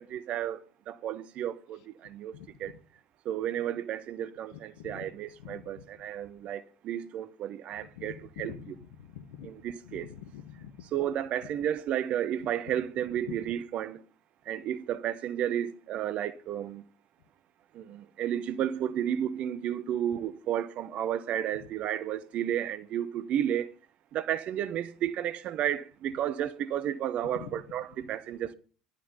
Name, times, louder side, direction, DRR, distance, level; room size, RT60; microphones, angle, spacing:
voice 1, 0.0-2.7 3.2-8.7 9.4-10.1 10.9-14.0 14.5-16.8 17.7-23.7 24.1-28.5, right 10 dB, 50° right, 0.9 m, -32 dB
voice 2, 4.8-5.1 5.4-5.7 7.8-8.1 8.4-9.5 9.8-10.9 13.3-13.4 27.2-27.6, left 9 dB, 70° left, 1.3 m, -45 dB
11.5 x 11.0 x 5.4 m
figure-of-eight pair, 65°, 3 cm